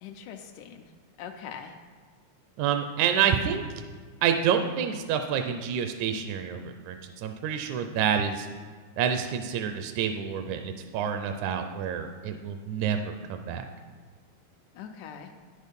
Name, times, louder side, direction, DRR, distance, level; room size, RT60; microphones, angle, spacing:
voice 1, 0.0-0.9 1.2-1.7 14.8-15.3, left 8 dB, 85° left, 4 dB, 2.1 m, -42 dB
voice 2, 2.6-3.6 4.2-8.5 9.0-13.6, right 8 dB, 80° right, 6 dB, 1.9 m, -28 dB
9.9 x 6.5 x 5.2 m, 1.5 s
omnidirectional pair, 3.5 m